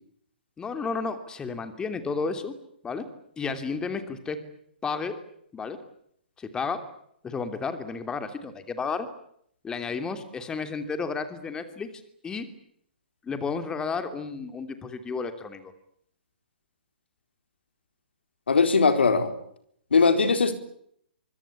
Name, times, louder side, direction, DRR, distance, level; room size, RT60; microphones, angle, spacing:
voice 1, 0.6-2.5 2.8-3.0 3.4-4.4 4.8-5.1 5.5-5.8 6.4-6.8 7.2-9.1 9.6-11.9 12.2-12.5 13.2-15.7, left 5 dB, 15° left, 2.9 m, -32 dB
voice 2, 18.5-19.3 19.9-20.5, left 4 dB, 80° left, 4.3 m, -20 dB
25.0 x 24.0 x 8.6 m
hypercardioid pair, 130°, 6 cm